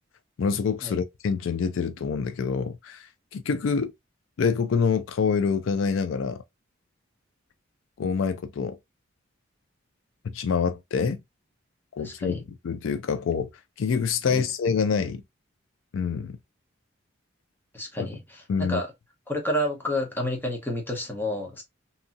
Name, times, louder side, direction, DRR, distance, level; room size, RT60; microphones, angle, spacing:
voice 1, 0.4-3.9 4.4-6.4 8.0-8.8 10.2-11.2 12.0-12.4 12.6-13.5 13.8-15.2 15.9-16.4 18.0-18.1 18.5-18.8, left 6 dB, 75° left, 0.4 m, -26 dB
voice 2, 12.0-12.4 14.3-14.4 17.7-18.9 19.3-21.6, left 1 dB, 10° left, 0.8 m, -30 dB
2.7 x 2.7 x 2.4 m
head